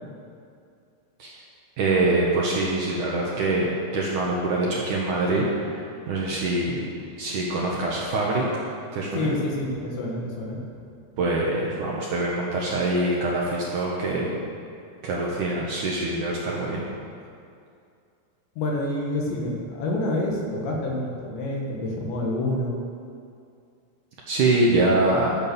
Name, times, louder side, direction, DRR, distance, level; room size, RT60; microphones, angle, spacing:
voice 1, 1.8-6.9 7.2-8.5 8.9-9.3 11.2-14.4 15.0-16.8 24.3-25.4, right 2 dB, 65° right, -4 dB, 2.1 m, -24 dB
voice 2, 9.1-10.6 18.6-22.8, left 1 dB, 80° left, -1 dB, 4.1 m, -27 dB
13.0 x 8.5 x 6.9 m, 2.4 s
omnidirectional pair, 5.0 m